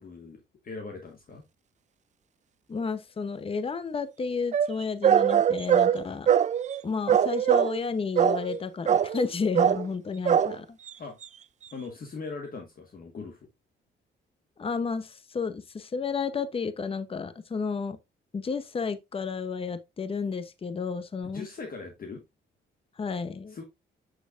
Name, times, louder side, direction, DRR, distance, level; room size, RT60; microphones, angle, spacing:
voice 1, 0.0-1.4 11.0-11.2 11.7-13.5 21.3-22.2 23.5-23.6, left 4 dB, 45° left, 1.5 m, -40 dB
voice 2, 2.7-6.3 6.8-10.8 14.6-18.0 18.3-21.4 23.0-23.6, left 5 dB, 30° left, 0.7 m, -32 dB
sound 1, 4.5-6.8 7.1-7.9 8.2-8.6 8.9-9.3 9.5-9.9 10.3-10.6 10.9-11.0 11.2-11.3, right 9 dB, 35° right, 0.4 m, -22 dB
6.7 x 6.5 x 2.5 m
cardioid pair, 90°, 20 cm